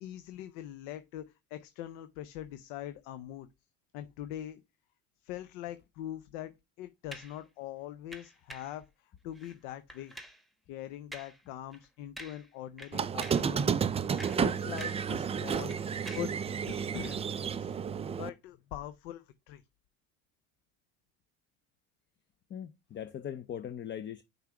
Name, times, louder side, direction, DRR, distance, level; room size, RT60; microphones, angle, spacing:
voice 1, 0.0-3.5 3.9-4.6 5.2-6.5 6.8-10.1 10.7-13.8 14.3-15.8 16.1-16.3 16.7-17.2 17.6-17.7 18.2-19.6, left 12 dB, 75° left, 0.7 m, -42 dB
sound 1, 7.1-7.4 8.1-8.8 9.3-9.6 9.9-10.4 11.1-11.4 11.7-11.9 12.2-12.5 12.8-13.5 14.0-15.1 15.4-16.4 17.0-17.2, right 1 dB, ahead, 1.1 m, -48 dB
Squeak, 12.9-18.3, right 7 dB, 20° right, 0.3 m, -31 dB
voice 2, 22.5-24.2, left 9 dB, 30° left, 0.5 m, -40 dB
5.7 x 3.6 x 5.7 m
supercardioid pair, 85°, 38 cm